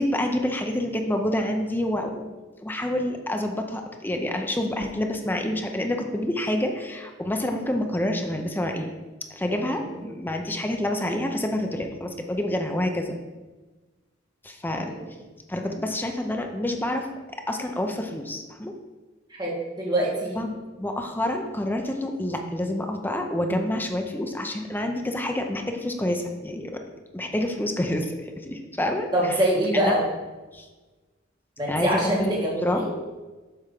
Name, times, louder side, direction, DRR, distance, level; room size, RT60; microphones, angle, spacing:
voice 1, 0.0-2.3 2.6-8.9 9.4-13.2 14.4-14.9 15.5-17.1 17.5-18.7 20.4-26.8 27.1-29.4 29.8-29.9 30.5-30.7 31.7-32.3 32.6-32.8, left 1 dB, 10° left, 4 dB, 0.6 m, -28 dB
voice 2, 9.5-10.1 14.9-15.1 19.3-20.4 29.1-30.0 31.6-32.9, right 1 dB, 25° right, -4 dB, 2.2 m, -25 dB
7.5 x 3.6 x 6.5 m, 1.2 s
head